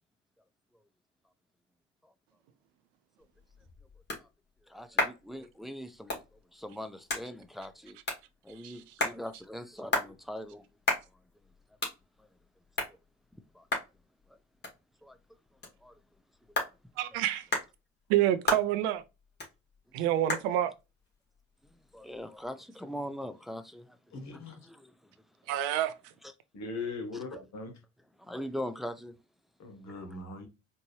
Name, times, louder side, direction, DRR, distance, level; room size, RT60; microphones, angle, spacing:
sound 1, 3.2-22.5, left 2 dB, 25° left, 1.9 m, -38 dB
voice 1, 4.7-8.0 8.4-10.6 12.8-13.0 13.3-13.7 15.0-15.2 15.8-15.9 20.3-20.4 21.7-24.0 24.3-24.9 25.5-25.6 27.1-27.2 28.2-29.2 29.9-30.0, equal, ahead, 0.4 m, -42 dB
voice 2, 17.0-17.5 18.1-19.0 19.9-20.7 25.5-26.1, right 12 dB, 65° right, 0.6 m, -28 dB
voice 3, 24.1-24.5 26.5-27.8 29.6-30.5, left 3 dB, 45° left, 1.2 m, -39 dB
4.3 x 2.6 x 3.1 m
figure-of-eight pair, 60°, 39 cm